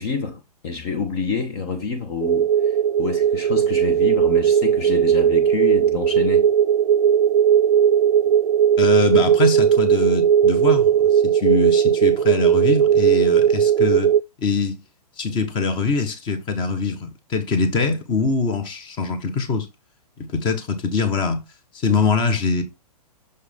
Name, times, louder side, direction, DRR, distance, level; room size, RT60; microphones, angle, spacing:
voice 1, 0.0-6.5, left 5 dB, 40° left, 1.1 m, -28 dB
sound 1, 2.2-14.2, right 9 dB, 70° right, 0.4 m, -17 dB
voice 2, 8.8-14.1 14.4-14.8 15.2-19.7 20.2-21.4 21.7-22.6, left 4 dB, 25° left, 1.3 m, -23 dB
6.6 x 4.7 x 3.5 m
hypercardioid pair, 135°, 20 cm